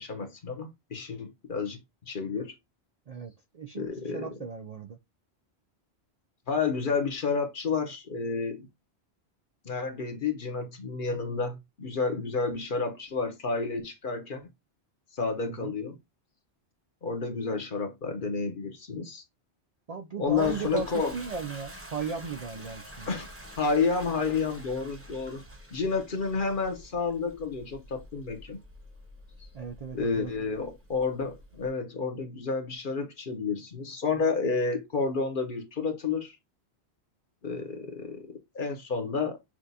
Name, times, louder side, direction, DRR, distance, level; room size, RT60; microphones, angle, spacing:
voice 1, 0.0-1.8 2.1-2.5 3.7-4.4 6.5-8.7 9.6-14.4 15.1-16.0 17.0-19.2 20.2-21.1 23.1-23.3 23.6-25.4 25.7-28.6 29.9-36.4 37.4-39.4, left 4 dB, 50° left, 1.1 m, -30 dB
voice 2, 3.1-5.0 15.5-15.7 19.9-23.1 29.5-30.3, right 5 dB, 55° right, 0.4 m, -37 dB
Toilet flush, 20.2-31.7, equal, 15° right, 0.8 m, -47 dB
6.0 x 2.4 x 2.6 m
omnidirectional pair, 1.1 m